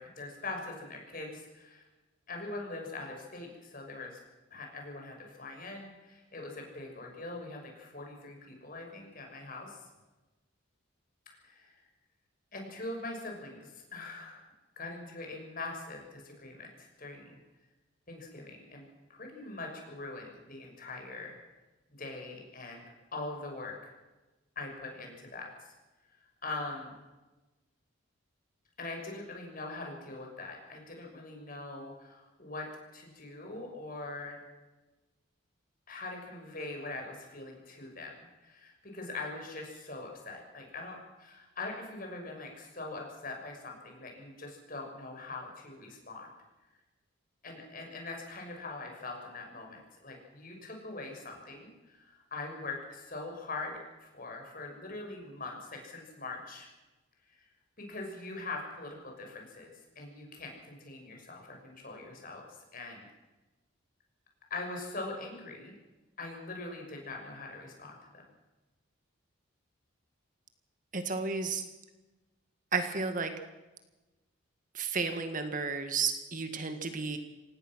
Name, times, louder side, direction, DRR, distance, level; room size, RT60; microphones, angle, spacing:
voice 1, 0.0-1.9 2.3-4.2 4.5-9.8 11.4-11.7 12.5-17.4 18.1-18.8 19.1-21.3 21.9-22.8 23.1-23.8 24.5-25.7 26.4-27.0 28.8-34.4 35.9-46.3 47.4-56.7 57.3-57.4 57.8-63.1 64.5-65.7 66.2-68.2, left 2 dB, 40° left, 1 dB, 6.3 m, -42 dB
voice 2, 70.9-71.6 72.7-73.3 74.7-77.2, right 4 dB, 40° right, 7 dB, 1.8 m, -32 dB
26.0 x 18.5 x 6.3 m, 1.1 s
head